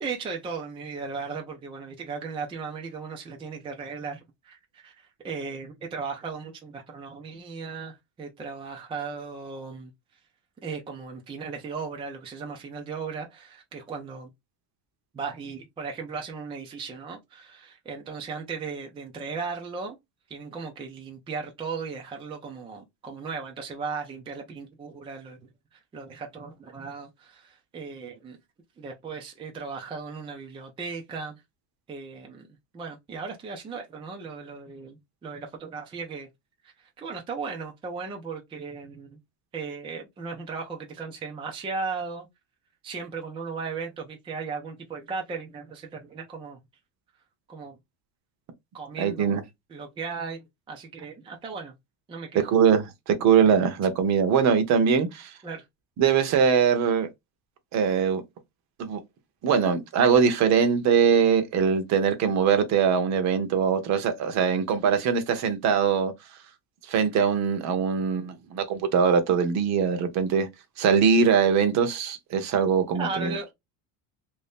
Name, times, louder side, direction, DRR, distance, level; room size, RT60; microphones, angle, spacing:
voice 1, 0.0-9.9 10.6-14.3 15.1-20.0 20.3-25.4 25.7-28.4 28.8-31.4 31.9-32.5 32.7-36.3 36.6-39.2 39.5-42.3 42.8-46.6 47.5-47.8 48.7-49.4 49.7-51.7 52.1-52.5 55.4-55.6 72.9-73.5, right 5 dB, 15° right, 0.4 m, -36 dB
voice 2, 49.0-49.4 52.5-55.3 56.0-57.1 57.7-58.2 58.8-59.0 59.4-66.1 66.9-70.5 70.8-73.3, right 6 dB, 40° right, 0.8 m, -22 dB
3.2 x 2.7 x 3.4 m
cardioid pair, 165°, 42 cm